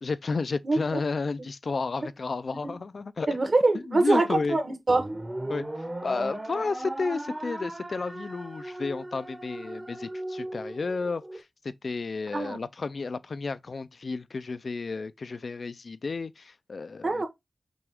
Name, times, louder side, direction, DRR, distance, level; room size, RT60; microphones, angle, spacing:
voice 1, 0.0-3.3 3.9-4.6 5.5-5.7 6.0-17.2, left 4 dB, 65° left, 0.3 m, -32 dB
voice 2, 3.3-5.0 12.3-12.6 17.0-17.3, right 2 dB, 55° right, 1.2 m, -24 dB
sound 1, 4.9-11.4, right 1 dB, 25° right, 0.8 m, -37 dB
6.0 x 2.4 x 3.4 m
wide cardioid pair, 90°, 0 cm